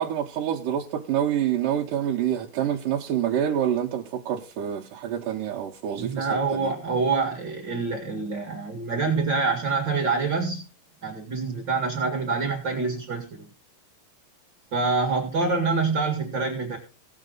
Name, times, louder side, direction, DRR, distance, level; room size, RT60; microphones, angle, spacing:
voice 1, 0.0-6.7, right 10 dB, 70° right, 2.3 m, -27 dB
voice 2, 6.0-10.6 11.0-13.5 14.7-16.8, right 4 dB, 40° right, 1.9 m, -26 dB
16.5 x 8.1 x 3.9 m
omnidirectional pair, 4.5 m